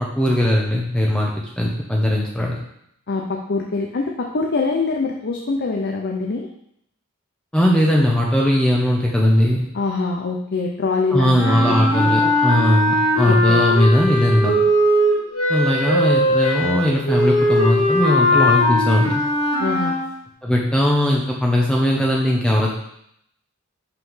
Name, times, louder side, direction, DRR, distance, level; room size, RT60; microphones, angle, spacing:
voice 1, 0.0-2.6 7.5-9.6 11.1-14.5 15.5-19.2 20.4-22.7, equal, 5° left, -3 dB, 0.9 m, -19 dB
voice 2, 3.1-6.5 9.7-11.8 12.2-12.4 13.2-13.6 19.6-20.0, left 3 dB, 50° left, 1 dB, 0.7 m, -24 dB
sound 1, 11.3-20.0, left 1 dB, 75° left, 2.6 m, -19 dB
5.9 x 5.6 x 5.6 m, 0.74 s
head